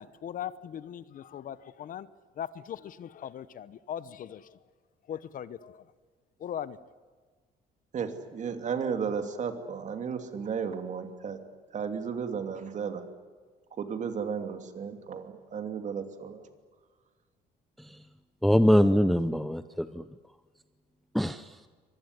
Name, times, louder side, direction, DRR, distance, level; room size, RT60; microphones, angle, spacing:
voice 1, 0.0-2.1 2.4-4.6 5.1-5.8 6.4-6.8, left 9 dB, 55° left, 16 dB, 1.0 m, -39 dB
voice 2, 7.9-11.5 11.7-13.0 13.8-16.4, right 6 dB, 45° right, 7 dB, 2.8 m, -34 dB
voice 3, 18.4-20.0 21.1-21.5, equal, ahead, 12 dB, 0.7 m, -23 dB
24.5 x 20.0 x 9.8 m, 1.5 s
cardioid pair, 110°, 17 cm